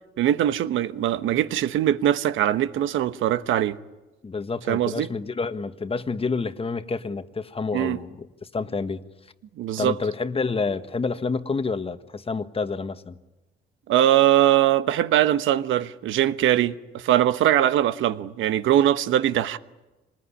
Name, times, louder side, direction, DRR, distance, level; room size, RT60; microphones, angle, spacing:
voice 1, 0.2-3.8 4.7-5.1 7.7-8.0 9.6-10.0 13.9-19.6, right 12 dB, 85° right, 1.1 m, -21 dB
voice 2, 4.2-8.3 8.5-9.0 9.8-13.2, left 4 dB, 30° left, 1.4 m, -28 dB
26.5 x 20.0 x 9.9 m
cardioid pair, 90°, 20 cm